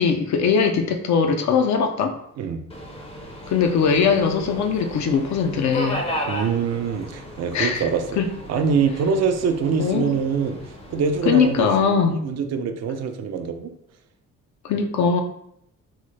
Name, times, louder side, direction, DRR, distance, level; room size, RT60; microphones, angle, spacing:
voice 1, 0.0-2.2 3.5-6.0 7.5-7.9 8.2-8.3 9.8-10.1 11.3-12.2 14.6-15.2, left 6 dB, 65° left, 4 dB, 0.5 m, -20 dB
Subway metro underground, 2.7-11.9, equal, 20° left, 0.5 m, -35 dB
voice 2, 6.2-8.0 8.5-10.6 10.9-13.7, right 6 dB, 60° right, 7 dB, 0.5 m, -24 dB
3.8 x 2.0 x 3.2 m, 0.74 s
cardioid pair, 90°, 30 cm